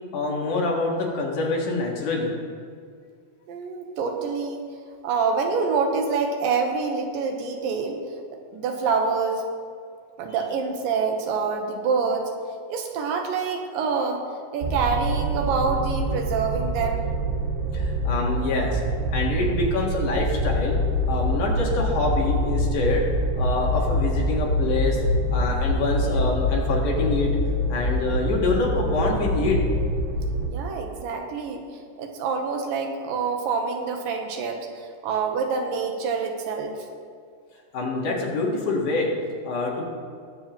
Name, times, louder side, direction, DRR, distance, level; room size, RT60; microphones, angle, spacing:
voice 1, 0.1-2.3 17.7-18.8 19.1-20.8 21.1-23.0 23.4-25.0 25.3-27.3 27.7-29.6 37.7-39.1 39.4-39.8, left 3 dB, 65° left, -2 dB, 3.0 m, -25 dB
voice 2, 3.5-4.6 5.0-8.0 8.5-9.4 10.2-12.3 12.7-14.2 14.5-17.1 30.5-31.6 32.0-36.9, right 5 dB, 85° right, 3 dB, 2.7 m, -26 dB
sound 1, 14.6-30.5, equal, 70° right, 2.1 m, -25 dB
19.5 x 7.7 x 3.0 m, 2.1 s
omnidirectional pair, 4.0 m